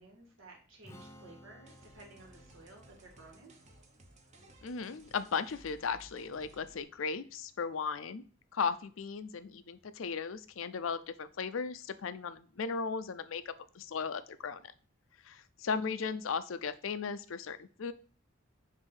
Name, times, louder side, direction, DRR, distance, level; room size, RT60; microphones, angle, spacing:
voice 1, 0.0-3.5, right 2 dB, 85° right, -1 dB, 1.8 m, -55 dB
Strum, 0.8-7.1, equal, 15° left, 0.7 m, -59 dB
sound 1, 1.6-6.8, right 1 dB, 35° right, 0.9 m, -59 dB
voice 2, 4.6-8.2 8.5-14.7 15.2-17.9, left 5 dB, 80° left, 13 dB, 0.5 m, -36 dB
6.5 x 2.7 x 5.4 m, 0.39 s
head